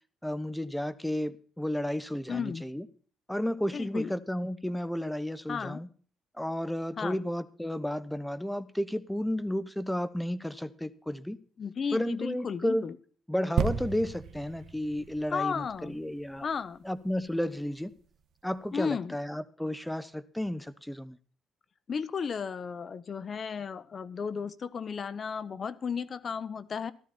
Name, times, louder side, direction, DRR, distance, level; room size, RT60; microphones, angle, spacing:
voice 1, 0.2-2.9 3.3-5.9 6.4-11.4 11.9-12.8 13.3-16.5 16.8-17.9 18.4-21.2, left 1 dB, 5° left, 1.0 m, -32 dB
voice 2, 2.3-2.6 3.7-4.1 5.5-5.8 7.0-7.2 11.6-13.0 15.3-16.0 16.4-16.8 18.7-19.2 21.9-26.9, left 6 dB, 45° left, 1.0 m, -34 dB
sound 1, 13.6-17.2 17.8-17.9, right 7 dB, 70° right, 1.2 m, -34 dB
14.5 x 13.0 x 4.3 m
cardioid pair, 90°, 0 cm